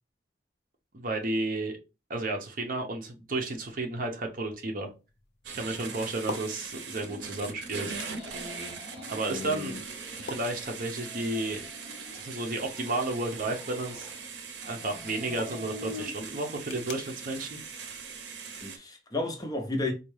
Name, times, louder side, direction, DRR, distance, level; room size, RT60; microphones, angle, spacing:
voice 1, 0.9-1.8 2.1-4.9 5.5-8.2 9.1-9.8 10.2-11.6 12.1-14.1 14.7-17.6, right 2 dB, 50° right, 0.7 m, -32 dB
sound 1, 3.5-18.7, left 3 dB, 65° left, 0.6 m, -49 dB
sound 2, 5.4-18.8, right 5 dB, 85° right, 0.6 m, -41 dB
sound 3, 7.8-9.5 9.8-10.6 10.9-12.3 12.6-14.2 14.6-16.1, left 2 dB, 30° right, 1.4 m, -46 dB
voice 2, 9.3-9.8 18.6-19.9, left 2 dB, 20° left, 0.6 m, -33 dB
4.2 x 2.3 x 3.1 m
head